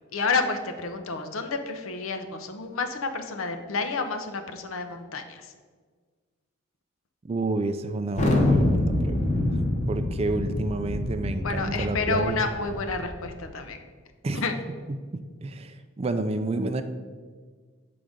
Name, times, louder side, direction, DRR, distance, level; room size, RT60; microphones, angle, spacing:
voice 1, 0.1-5.5 11.4-13.8 14.3-14.5, left 4 dB, 75° left, 7 dB, 0.7 m, -30 dB
voice 2, 7.2-8.8 9.1-9.2 9.9-12.5 14.2-14.4 15.1-16.8, right 2 dB, 30° right, 9 dB, 0.3 m, -29 dB
Thunder, 8.2-13.3, left 1 dB, 35° left, 0.8 m, -26 dB
7.3 x 3.9 x 4.9 m, 1.5 s
head